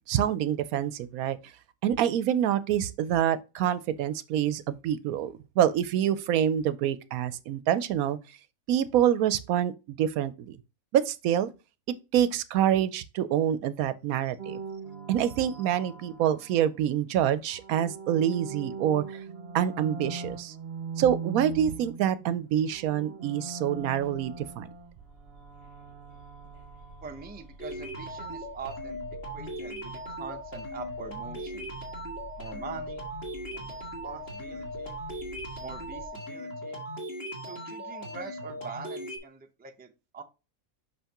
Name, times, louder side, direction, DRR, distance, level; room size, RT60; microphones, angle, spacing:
voice 1, 0.1-1.4 1.8-8.2 8.7-10.6 10.9-11.5 12.1-14.6 15.1-19.2 19.5-20.5 21.0-24.7, right 10 dB, 75° right, 1.0 m, -26 dB
sound 1, 14.4-16.8 17.4-22.3 22.6-27.5, right 4 dB, 45° right, 1.0 m, -41 dB
sound 2, 23.8-36.1, right 2 dB, 55° left, 3.4 m, -50 dB
voice 2, 27.0-29.0 29.3-31.7 32.4-33.1 33.5-35.0 35.6-36.8 37.5-40.2, right 5 dB, 10° right, 0.5 m, -43 dB
sound 3, 27.6-39.2, equal, 40° left, 2.1 m, -38 dB
5.9 x 5.6 x 2.9 m
omnidirectional pair, 1.5 m